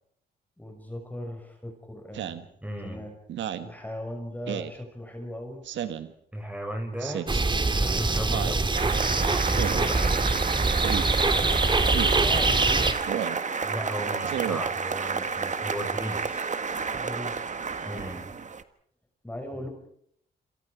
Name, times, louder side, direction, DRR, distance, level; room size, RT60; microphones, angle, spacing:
voice 1, 0.6-2.5 2.8-3.1 3.6-5.6 11.3-13.2 17.0-18.3 19.2-19.7, left 1 dB, 10° left, 3 dB, 6.0 m, -39 dB
Speech synthesizer, 2.1-2.4 3.3-3.7 4.5-4.8 5.6-6.1 7.0-7.4 8.3-8.6 9.6-9.9 10.8-11.1 11.9-12.2 13.1-13.4 14.2-14.6, right 10 dB, 85° right, 1.5 m, -32 dB
voice 2, 2.6-3.0 6.3-7.3 7.7-8.7 9.2-10.3 13.6-16.5 17.8-18.3 19.6-19.7, equal, 5° right, 3 dB, 6.3 m, -35 dB
sound 1, 7.3-12.9, right 3 dB, 25° right, 2.3 m, -24 dB
sound 2, 8.7-18.6, right 5 dB, 40° right, 1.5 m, -30 dB
28.0 x 27.5 x 5.0 m, 0.68 s
cardioid pair, 75°, 19 cm